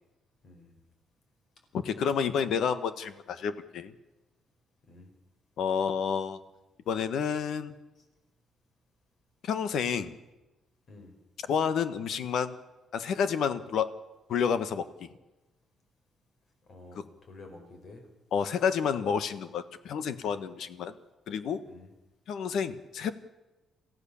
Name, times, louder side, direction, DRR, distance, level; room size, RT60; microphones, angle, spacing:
voice 1, 0.4-0.8 4.9-5.1 10.9-11.1 16.7-18.1 21.7-21.9, left 2 dB, 45° left, 5 dB, 5.2 m, -50 dB
voice 2, 1.7-3.9 5.6-6.4 6.9-7.7 9.4-10.2 11.5-12.6 12.9-13.9 14.3-15.1 16.9-17.0 18.3-20.9 21.3-21.6 22.3-23.1, left 7 dB, 65° left, 12 dB, 1.3 m, -29 dB
28.0 x 15.0 x 7.1 m, 1.1 s
cardioid pair, 150°, 0 cm